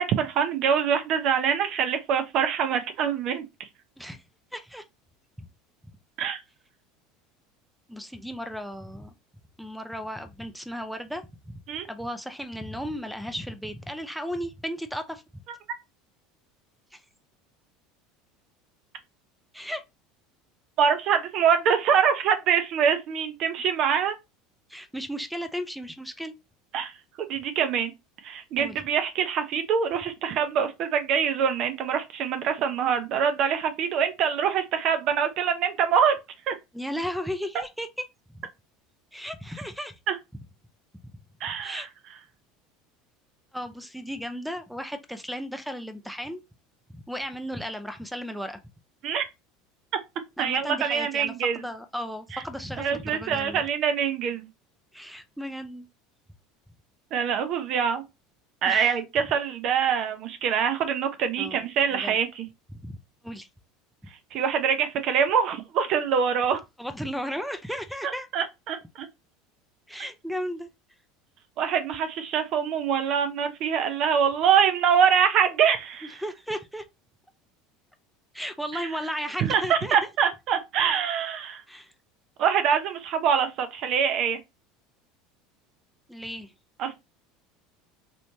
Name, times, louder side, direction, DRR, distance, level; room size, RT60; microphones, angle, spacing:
voice 1, 0.0-3.4 6.2-6.4 11.7-11.9 20.8-24.1 26.7-26.9 27.3-27.9 28.2-36.2 36.5-36.6 40.1-40.2 41.4-41.9 49.0-49.3 50.4-51.6 52.3-52.4 52.8-54.5 57.1-58.0 58.6-62.5 64.3-66.6 68.3-69.1 71.6-76.2 78.7-78.9 79.4-81.6 82.4-84.4 86.8-87.0, right 7 dB, 55° right, 0.7 m, -24 dB
voice 2, 4.5-4.8 7.9-9.1 9.6-11.6 11.9-15.2 16.9-17.0 19.5-19.8 24.7-26.3 28.5-28.8 36.7-38.1 39.1-39.9 41.6-41.9 43.5-46.4 46.9-48.6 50.4-53.6 54.9-55.9 58.7-59.0 61.4-61.6 61.9-62.2 62.8-63.0 63.2-63.5 66.8-68.3 69.9-70.7 76.2-76.8 78.3-80.0 81.7-81.9 86.1-86.5, equal, ahead, 0.5 m, -35 dB
3.2 x 3.0 x 2.7 m
hypercardioid pair, 80°, 0 cm